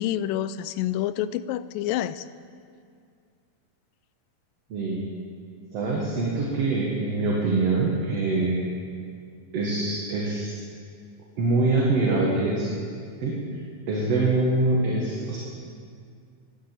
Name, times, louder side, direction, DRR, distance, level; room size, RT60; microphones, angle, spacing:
voice 1, 0.0-2.2, left 12 dB, 90° left, 15 dB, 2.2 m, -28 dB
voice 2, 4.7-5.0 5.7-8.6 9.5-10.6 11.4-12.7 13.2-13.4 13.9-15.4, right 2 dB, 55° right, -3 dB, 2.6 m, -24 dB
13.0 x 11.5 x 9.0 m, 2.2 s
omnidirectional pair, 3.9 m